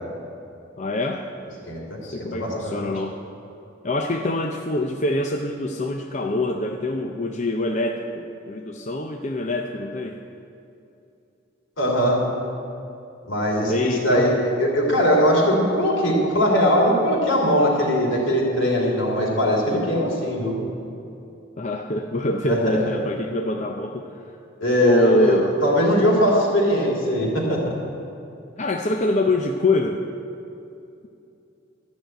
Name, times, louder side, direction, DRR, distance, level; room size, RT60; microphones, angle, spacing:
voice 1, 0.8-1.2 2.0-3.2 3.8-10.2 13.7-14.4 21.6-24.2 24.8-25.5 28.6-30.0, left 1 dB, 35° left, 3 dB, 0.5 m, -25 dB
voice 2, 1.7-2.0 2.3-2.9 11.8-12.2 13.3-20.6 22.4-22.8 24.6-27.8, equal, 70° left, -3 dB, 3.2 m, -20 dB
12.5 x 6.3 x 9.1 m, 2.7 s
head